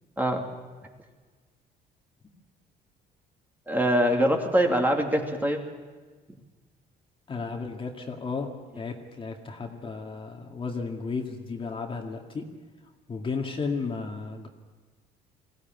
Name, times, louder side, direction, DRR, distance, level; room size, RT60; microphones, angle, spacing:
voice 1, 3.7-5.6, equal, 10° right, 2 dB, 2.8 m, -23 dB
voice 2, 7.3-8.5 8.8-12.5 13.1-14.5, left 4 dB, 30° left, 2 dB, 2.2 m, -33 dB
21.0 x 16.5 x 9.4 m, 1.4 s
cardioid pair, 110°, 17 cm